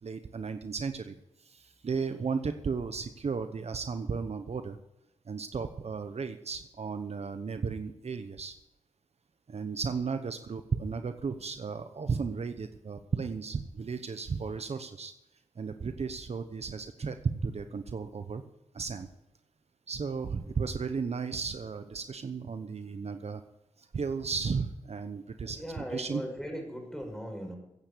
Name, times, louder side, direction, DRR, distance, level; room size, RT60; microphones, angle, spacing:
voice 1, 0.0-4.8 5.3-8.6 9.5-15.1 15.6-18.4 18.7-19.1 19.9-23.4 23.8-26.2, right 5 dB, 60° right, 9 dB, 0.9 m, -34 dB
voice 2, 25.4-27.6, equal, 5° left, 2 dB, 5.4 m, -38 dB
15.5 x 9.2 x 6.8 m, 0.91 s
cardioid pair, 70°, 13 cm